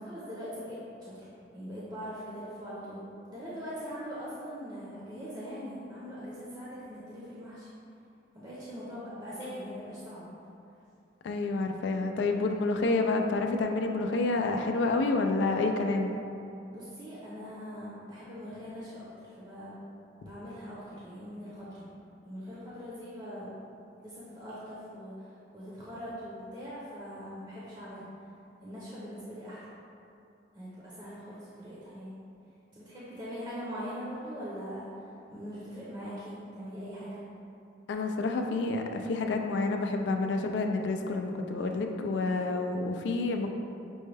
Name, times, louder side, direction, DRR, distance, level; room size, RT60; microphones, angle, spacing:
voice 1, 0.0-3.0 3.3-7.7 8.3-10.3 16.7-19.7 20.2-21.8 22.2-23.6 23.8-25.3 25.5-28.0 28.6-29.6 30.5-32.1 32.7-34.9 35.3-37.2, equal, 25° right, -9 dB, 0.6 m, -42 dB
voice 2, 11.2-16.1 37.9-43.5, left 3 dB, 80° left, 4 dB, 0.3 m, -29 dB
6.1 x 2.2 x 3.2 m, 2.7 s
head